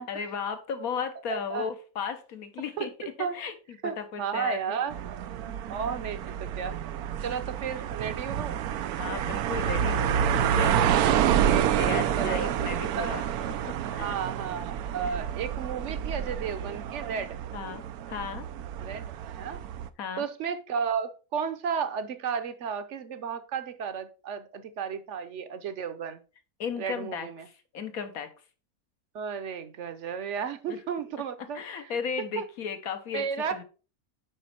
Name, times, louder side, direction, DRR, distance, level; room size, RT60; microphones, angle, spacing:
voice 1, 0.0-2.9 3.2-3.5 3.8-4.8 7.8-7.9 9.0-10.8 11.9-14.2 15.0-15.1 17.5-18.5 20.0-20.3 26.6-28.3 30.7-30.8 31.5-33.2 33.5-33.6, left 6 dB, 70° left, 9 dB, 1.6 m, -35 dB
voice 2, 1.3-1.7 2.8-2.9 3.2-3.4 3.8-5.1 5.7-6.8 7.2-8.6 10.0-10.4 11.1-13.2 13.8-17.4 18.8-19.0 19.4-19.6 20.2-26.2 26.8-27.5 29.1-31.6 32.4-32.5 33.1-33.6, right 7 dB, 55° right, 11 dB, 1.0 m, -33 dB
sound 1, 4.9-19.9, right 9 dB, 85° right, 1.1 m, -28 dB
8.3 x 5.3 x 4.3 m, 0.35 s
omnidirectional pair, 1.6 m